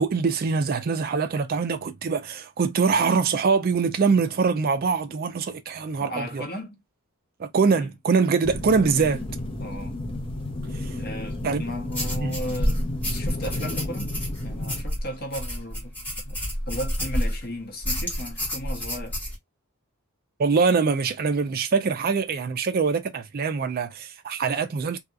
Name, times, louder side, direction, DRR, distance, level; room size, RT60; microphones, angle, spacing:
voice 1, 0.0-6.4 7.4-9.2 10.7-11.0 11.4-11.6 12.2-12.3 20.4-25.0, right 5 dB, 45° right, 0.4 m, -23 dB
voice 2, 6.0-6.8 7.7-7.9 9.6-10.0 11.0-14.1 14.4-16.0 16.2-16.4 16.7-19.2, left 1 dB, 45° left, 0.9 m, -35 dB
sound 1, 8.4-14.8, left 1 dB, 25° left, 0.6 m, -32 dB
sound 2, 11.9-17.4 17.8-19.4, equal, 10° left, 1.2 m, -29 dB
2.8 x 2.3 x 2.3 m
head